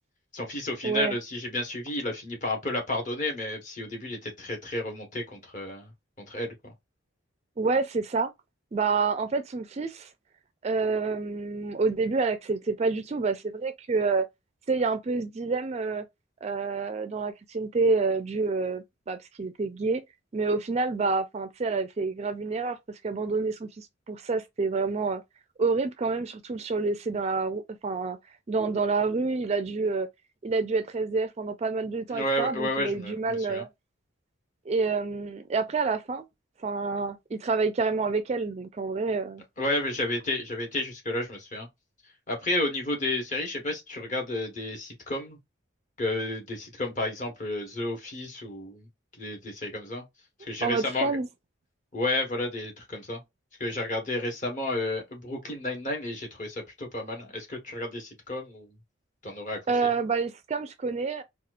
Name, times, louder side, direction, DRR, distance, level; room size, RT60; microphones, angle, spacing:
voice 1, 0.3-5.9 6.3-6.7 32.1-33.6 39.6-41.7 42.3-45.4 46.0-48.9 49.2-50.0 50.4-51.1 51.9-53.2 53.6-58.8 59.2-59.9, left 1 dB, 40° left, 1.1 m, -31 dB
voice 2, 0.8-1.2 7.6-8.3 8.7-10.1 10.6-14.3 14.7-16.1 16.4-20.0 20.3-22.8 23.0-25.2 25.6-28.2 28.5-30.1 30.4-33.7 34.7-36.2 36.6-39.4 50.6-51.3 59.7-61.2, right 4 dB, 35° right, 0.4 m, -28 dB
4.1 x 2.4 x 2.4 m
head